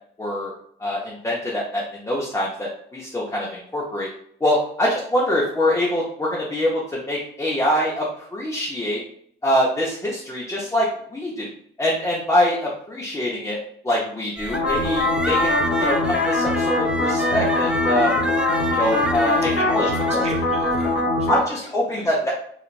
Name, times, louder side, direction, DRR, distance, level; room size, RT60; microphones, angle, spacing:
voice 1, 0.2-0.5 0.8-4.1 4.4-9.0 9.4-11.5 11.8-13.6 13.8-18.2 18.7-20.2 21.3-22.3, left 1 dB, 15° left, -4 dB, 0.7 m, -24 dB
sound 1, 14.4-21.0, right 1 dB, 5° right, 0.3 m, -29 dB
sound 2, 14.5-21.4, left 2 dB, 70° left, 0.8 m, -22 dB
voice 2, 19.6-21.4 21.9-22.1, right 2 dB, 30° right, -2 dB, 0.9 m, -36 dB
3.2 x 2.4 x 2.4 m, 0.64 s
cardioid pair, 90°, 20 cm